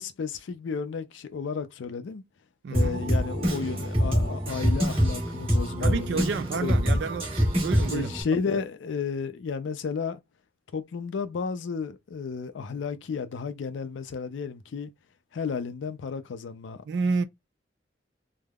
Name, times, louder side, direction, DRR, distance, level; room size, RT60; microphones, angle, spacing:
voice 1, 0.0-2.2 2.7-7.0 7.8-10.2 10.7-14.9 15.3-16.8, left 5 dB, 80° left, 0.4 m, -33 dB
voice 2, 2.6-3.1 5.8-8.1 16.9-17.2, right 4 dB, 65° right, 0.3 m, -30 dB
Drum kit, 2.7-8.2, equal, 30° right, 1.3 m, -25 dB
3.4 x 2.0 x 2.3 m
head